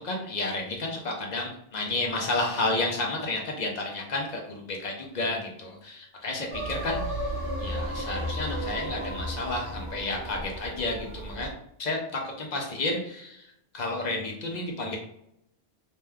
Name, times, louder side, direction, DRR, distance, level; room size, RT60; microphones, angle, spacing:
voice 1, 0.0-11.5 11.8-15.0, left 2 dB, 55° left, 0 dB, 0.5 m, -31 dB
sound 1, 6.5-11.5, equal, 30° right, 0.8 m, -34 dB
2.7 x 2.2 x 3.3 m, 0.78 s
omnidirectional pair, 1.3 m